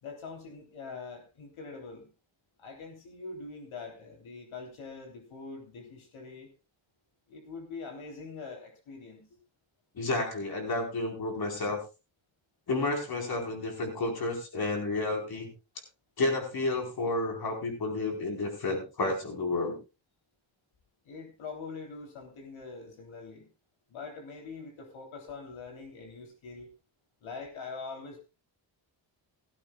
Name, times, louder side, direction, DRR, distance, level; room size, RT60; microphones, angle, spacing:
voice 1, 0.0-2.1 2.6-6.5 7.3-9.4 21.1-23.5 23.9-26.7 27.2-28.2, left 4 dB, 85° left, 2 dB, 3.5 m, -43 dB
voice 2, 9.9-11.8 12.7-15.5 16.2-19.8, left 2 dB, 50° left, 2 dB, 4.6 m, -31 dB
17.0 x 15.5 x 2.4 m, 0.29 s
wide cardioid pair, 170°, 47 cm